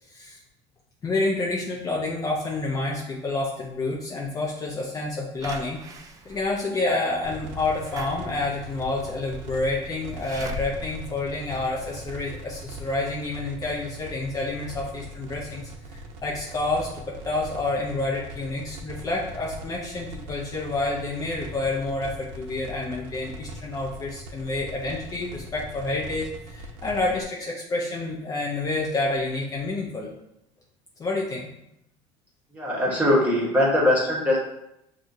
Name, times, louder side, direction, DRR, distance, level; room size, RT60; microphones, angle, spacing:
voice 1, 1.0-30.1 31.0-31.5 32.8-32.9, left 2 dB, 25° left, -3 dB, 0.6 m, -29 dB
Slam / Alarm, 5.4-12.2 12.7-12.8 13.0-13.1, right 1 dB, 25° right, 0.4 m, -41 dB
sound 1, 7.2-27.2, right 1 dB, 75° right, 0.7 m, -41 dB
voice 2, 32.5-34.4, left 1 dB, 10° right, -4 dB, 1.2 m, -21 dB
6.1 x 2.4 x 2.7 m, 0.81 s
cardioid pair, 135°, 13 cm